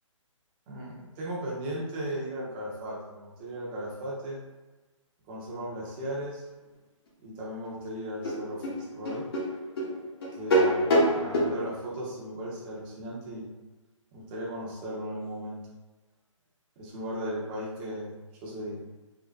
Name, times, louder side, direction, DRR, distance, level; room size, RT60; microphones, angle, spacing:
voice 1, 0.7-4.4 5.3-6.4 7.2-8.7 8.9-9.3 10.3-13.4 14.1-15.6 16.8-18.1 18.4-18.8, right 1 dB, 15° right, -5 dB, 0.8 m, -36 dB
sound 1, 7.6-7.7 8.2-11.5, equal, 45° left, 1.1 m, -25 dB
3.9 x 3.0 x 3.5 m, 1.2 s
hypercardioid pair, 165°, 17 cm